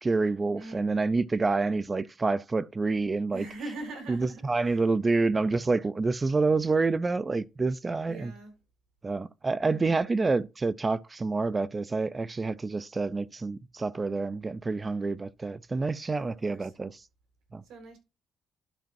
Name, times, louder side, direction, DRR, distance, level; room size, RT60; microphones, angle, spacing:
voice 1, 0.0-3.5 4.1-8.3 9.0-16.9 17.5-17.6, right 3 dB, 25° right, 0.5 m, -28 dB
voice 2, 0.5-1.1 3.3-4.8 8.1-8.5 9.6-10.1 16.1-16.7 17.6-18.0, right 2 dB, 85° right, 4.3 m, -43 dB
12.0 x 5.1 x 2.6 m
cardioid pair, 90°, 0 cm